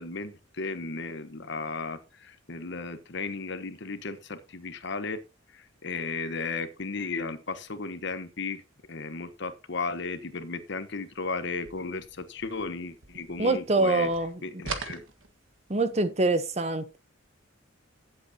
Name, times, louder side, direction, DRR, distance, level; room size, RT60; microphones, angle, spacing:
voice 1, 0.0-5.2 5.5-8.6 8.9-14.1 14.4-15.0, left 4 dB, 60° left, 1.1 m, -35 dB
sound 1, 11.5-13.8 14.0-15.8, right 4 dB, 70° right, 1.5 m, -41 dB
voice 2, 13.4-14.6 15.7-17.0, right 2 dB, 30° right, 0.9 m, -25 dB
15.0 x 8.0 x 2.8 m
head